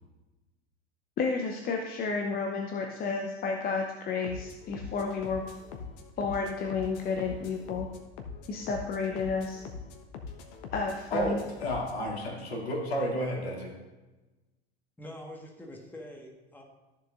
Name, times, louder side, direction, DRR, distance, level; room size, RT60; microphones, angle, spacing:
voice 1, 1.2-5.4 6.2-7.9 8.5-9.6 10.7-11.4, left 4 dB, 30° left, 2 dB, 0.8 m, -31 dB
sound 1, 4.2-12.0, left 5 dB, 45° left, 1.1 m, -43 dB
voice 2, 11.1-13.7, equal, 65° left, -1 dB, 2.5 m, -31 dB
voice 3, 15.0-16.6, left 1 dB, 5° left, 0 dB, 1.5 m, -45 dB
14.0 x 7.1 x 2.5 m, 1.1 s
figure-of-eight pair, 80°, 32 cm